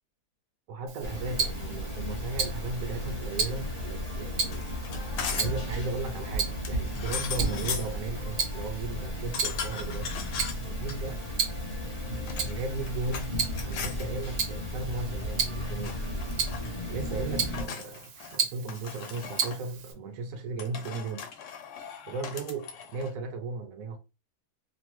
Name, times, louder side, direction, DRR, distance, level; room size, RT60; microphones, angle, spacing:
voice 1, 0.7-4.7 5.3-10.1 10.6-11.2 12.0-12.1 12.4-13.3 13.6-16.0 16.9-21.3 22.1-24.0, right 3 dB, 70° right, 0.9 m, -36 dB
Tick-tock, 0.9-19.9, right 6 dB, 90° right, 1.3 m, -36 dB
sound 1, 1.0-17.6, equal, 40° left, 0.5 m, -34 dB
sound 2, 4.4-5.7 6.6-8.0 9.3-11.0 12.1-13.3 13.5-14.0 15.2-15.6 15.8-16.7 17.5-18.4 18.7-19.6 20.6-23.1, left 6 dB, 80° left, 1.1 m, -38 dB
3.0 x 2.1 x 3.0 m
omnidirectional pair, 1.7 m